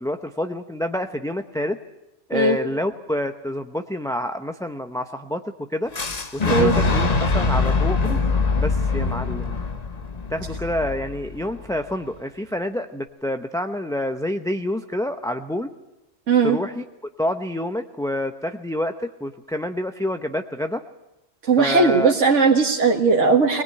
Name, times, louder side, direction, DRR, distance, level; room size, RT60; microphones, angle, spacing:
voice 1, 0.0-1.8 2.3-5.9 6.3-8.2 8.6-9.6 10.3-15.7 16.4-16.8 17.2-20.8 21.6-22.1, left 1 dB, 5° left, 6 dB, 0.6 m, -28 dB
Fire / Explosion, 5.9-11.8, left 3 dB, 35° left, 1.2 m, -23 dB
voice 2, 16.3-16.6 21.5-23.6, right 4 dB, 80° right, 0 dB, 2.1 m, -18 dB
22.0 x 20.0 x 9.1 m, 0.96 s
omnidirectional pair, 1.2 m